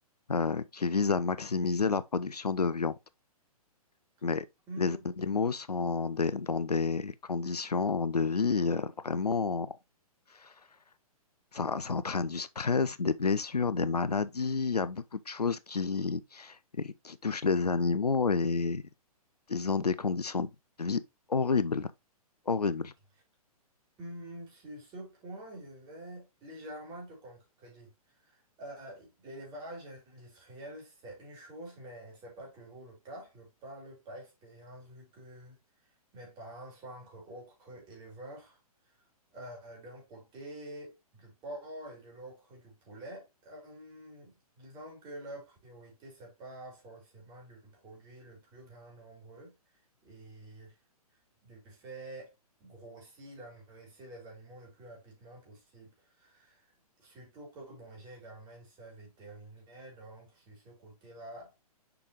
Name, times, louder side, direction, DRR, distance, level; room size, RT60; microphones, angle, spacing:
voice 1, 0.3-2.9 4.2-4.5 4.8-9.7 10.3-10.5 11.5-18.8 19.5-20.5 20.8-21.0 21.3-21.9 22.5-22.9, left 4 dB, 90° left, 0.5 m, -30 dB
voice 2, 4.7-5.1 24.0-35.6 36.1-38.6 39.3-49.5 50.0-50.8 51.4-52.3 52.6-56.7 57.0-61.5, right 1 dB, 25° right, 3.8 m, -47 dB
6.9 x 5.0 x 3.0 m
figure-of-eight pair, 120°, 19 cm